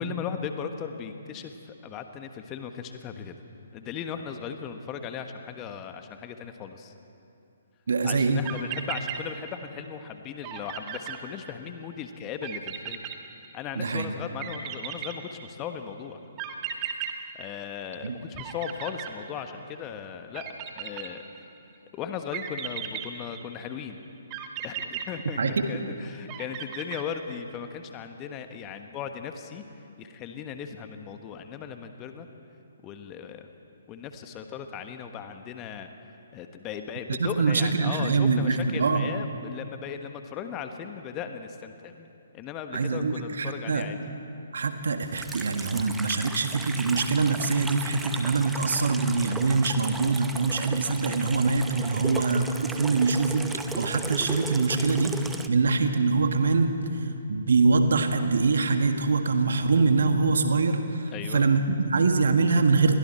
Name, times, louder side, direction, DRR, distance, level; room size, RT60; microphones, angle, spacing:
voice 1, 0.0-3.4 3.7-6.9 8.0-13.0 13.5-16.2 17.3-21.2 21.9-24.0 24.6-29.6 30.0-32.3 32.8-33.5 33.9-35.9 36.3-42.1 42.3-44.1 52.0-52.5 61.1-61.5, left 7 dB, 25° left, 7 dB, 1.3 m, -37 dB
voice 2, 7.9-8.4 13.8-14.1 18.0-18.2 25.4-25.6 37.2-39.1 42.7-43.9 44.5-53.5 53.8-55.1 55.5-56.7 57.3-60.8 61.3-63.0, right 4 dB, 60° right, 7 dB, 1.7 m, -24 dB
sound 1, 8.5-9.8 10.1-10.2 10.4-11.9 12.4-13.8 14.4-15.7 16.4-18.1 18.4-19.8 20.3-21.6 22.3-23.7 24.3-25.8 26.3-27.5, right 9 dB, 25° right, 1.7 m, -36 dB
Water tap faucet / Sink (filling or washing), 45.1-55.5, right 3 dB, 5° right, 0.9 m, -37 dB
29.0 x 22.5 x 4.5 m, 2.7 s
figure-of-eight pair, 130°, 0 cm